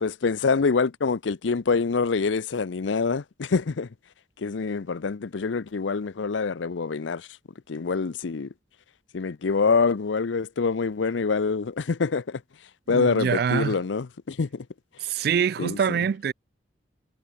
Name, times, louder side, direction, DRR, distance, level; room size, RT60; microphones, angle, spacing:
voice 1, 0.0-3.9 4.4-7.3 7.7-8.5 9.1-12.4 12.9-14.6 15.2-15.3 15.6-15.8, left 4 dB, 90° left, 0.6 m, -25 dB
voice 2, 12.9-13.8 15.0-16.3, right 7 dB, 55° right, 0.3 m, -25 dB
head